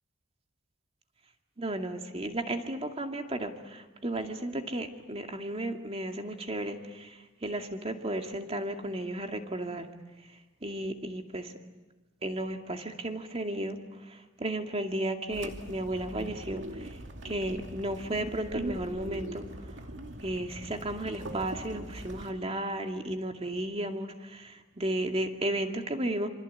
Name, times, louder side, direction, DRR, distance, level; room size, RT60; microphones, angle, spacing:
voice 1, 1.6-9.9 10.6-11.5 12.2-13.8 14.1-17.0 17.2-19.4 20.2-26.3, right 1 dB, 30° right, 4 dB, 2.3 m, -34 dB
sound 1, 15.3-22.3, right 1 dB, 65° right, 2.5 m, -41 dB
27.0 x 26.0 x 8.5 m, 1.2 s
head